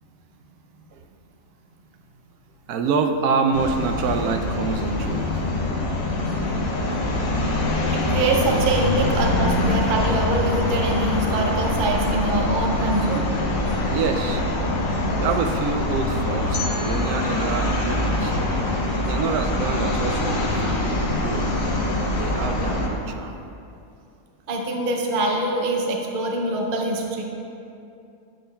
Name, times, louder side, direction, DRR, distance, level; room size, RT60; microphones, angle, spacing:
voice 1, 2.7-5.3 13.9-14.4 15.2-18.3 19.1-21.5 21.9-23.3, right 5 dB, 80° right, 6 dB, 1.0 m, -26 dB
sound 1, 3.5-22.9, left 1 dB, 65° left, 1.2 m, -24 dB
voice 2, 7.9-13.2 24.5-27.2, right 2 dB, 50° right, 1 dB, 0.6 m, -24 dB
sound 2, 16.5-19.5, left 3 dB, 90° left, 1.5 m, -38 dB
8.8 x 7.6 x 2.2 m, 2.6 s
omnidirectional pair, 1.6 m